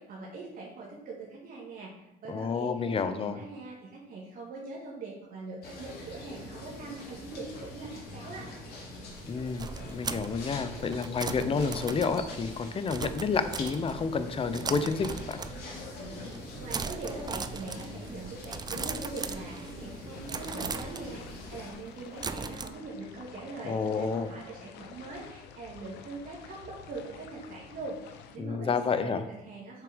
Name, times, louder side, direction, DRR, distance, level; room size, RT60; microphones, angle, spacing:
voice 1, 0.0-8.5 16.6-29.8, right 3 dB, 55° right, -4 dB, 2.0 m, -42 dB
voice 2, 2.3-3.4 9.3-15.4 23.6-24.3 28.4-29.3, left 5 dB, 35° left, 11 dB, 0.8 m, -30 dB
sound 1, 5.6-21.7, left 1 dB, 70° left, 2.6 m, -43 dB
sound 2, 9.1-14.2 14.5-15.9 16.2-16.4 16.7-19.9 20.3-22.7, right 5 dB, 25° right, 0.5 m, -39 dB
sound 3, 20.1-28.4, left 8 dB, 85° left, 0.8 m, -50 dB
6.9 x 6.7 x 5.1 m, 0.90 s
cardioid pair, 110°, 17 cm